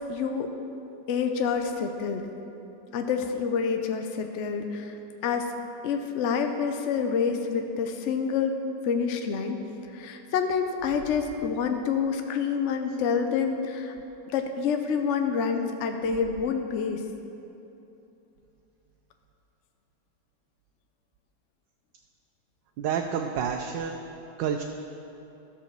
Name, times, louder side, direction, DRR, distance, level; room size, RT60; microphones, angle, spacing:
voice 1, 0.1-0.5 1.1-2.3 2.9-4.9 5.2-5.5 5.8-8.6 8.8-9.6 9.9-13.9 14.3-17.0, left 6 dB, 65° left, 5 dB, 0.7 m, -27 dB
voice 2, 22.8-24.1 24.4-24.6, right 7 dB, 80° right, 3 dB, 1.3 m, -29 dB
13.0 x 5.0 x 6.7 m, 2.9 s
omnidirectional pair, 1.9 m